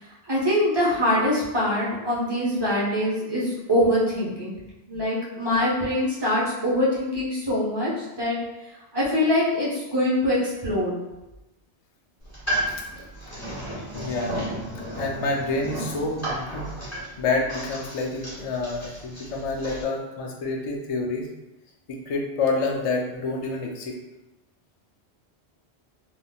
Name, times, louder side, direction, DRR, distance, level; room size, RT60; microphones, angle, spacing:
voice 1, 0.3-4.5 4.9-8.4 8.9-10.9, left 1 dB, 25° right, -8 dB, 1.0 m, -23 dB
sound 1, 12.2-19.8, right 1 dB, 15° left, 1.5 m, -33 dB
voice 2, 13.9-14.4 14.7-21.3 21.9-24.0, left 3 dB, 50° left, -1 dB, 0.4 m, -28 dB
3.6 x 2.5 x 2.3 m, 1.0 s
omnidirectional pair, 1.1 m